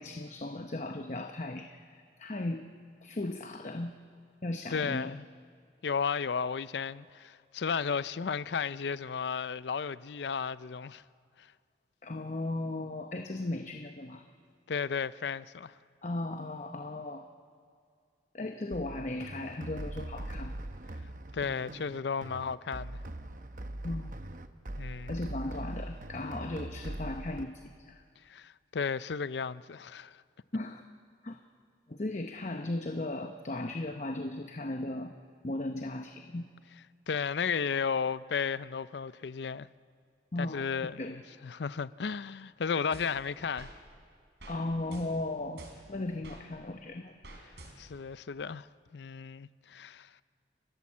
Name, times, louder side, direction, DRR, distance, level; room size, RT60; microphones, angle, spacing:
voice 1, 0.0-2.6 3.0-4.0 4.4-5.1 12.0-14.3 16.0-17.3 18.3-20.6 23.8-24.2 25.1-28.0 30.5-30.8 31.2-31.4 31.9-35.1 35.4-36.5 40.3-40.7 41.0-41.2 44.5-47.1, left 2 dB, 40° left, 0.8 m, -36 dB
voice 2, 4.7-5.2 5.8-11.0 11.4-11.5 14.7-15.7 21.3-23.0 24.8-25.1 28.3-30.2 37.1-39.7 40.4-43.7 47.8-48.7 48.9-50.1, left 6 dB, 75° left, 0.5 m, -34 dB
sound 1, 18.7-27.4, right 1 dB, 50° right, 0.9 m, -41 dB
sound 2, 42.9-43.8 44.4-44.6 44.9-46.4 47.2-48.1, right 1 dB, 75° right, 4.3 m, -49 dB
29.5 x 15.5 x 7.4 m
head